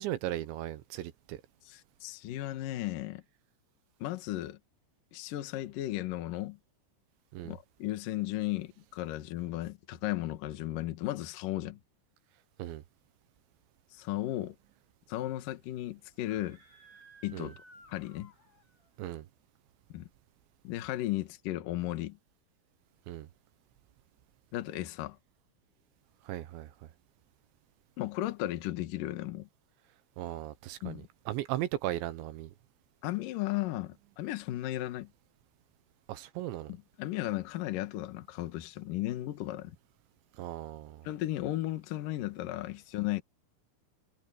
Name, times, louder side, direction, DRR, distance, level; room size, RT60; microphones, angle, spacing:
voice 1, 0.0-1.4 7.3-7.6 12.6-12.8 17.3-17.5 19.0-19.3 23.1-23.3 26.2-26.7 30.2-32.5 36.1-36.7 40.4-41.1, right 14 dB, 75° right, 3.0 m, -37 dB
voice 2, 1.7-3.2 4.0-4.6 5.1-6.6 7.4-11.8 13.9-14.6 15.1-16.6 17.2-17.6 17.9-18.3 19.9-20.1 20.6-22.2 24.5-25.2 28.0-29.5 30.8-31.1 33.0-35.1 36.7-39.8 41.0-43.2, left 15 dB, 65° left, 2.2 m, -35 dB
Screaming, 16.1-18.9, right 1 dB, 25° left, 6.6 m, -57 dB
omnidirectional pair, 5.7 m